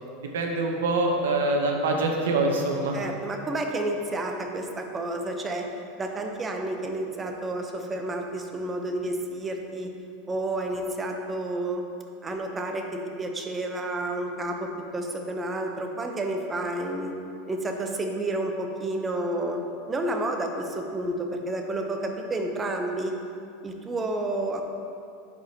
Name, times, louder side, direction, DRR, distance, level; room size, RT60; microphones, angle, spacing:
voice 1, 0.3-3.0, right 2 dB, 90° right, 2 dB, 0.9 m, -24 dB
voice 2, 2.9-5.7 6.0-9.9 10.3-11.8 12.2-17.1 17.5-19.6 19.9-23.1 23.6-24.7, right 1 dB, 20° right, 3 dB, 0.8 m, -30 dB
11.0 x 4.9 x 2.9 m, 2.5 s
supercardioid pair, 115°, 0 cm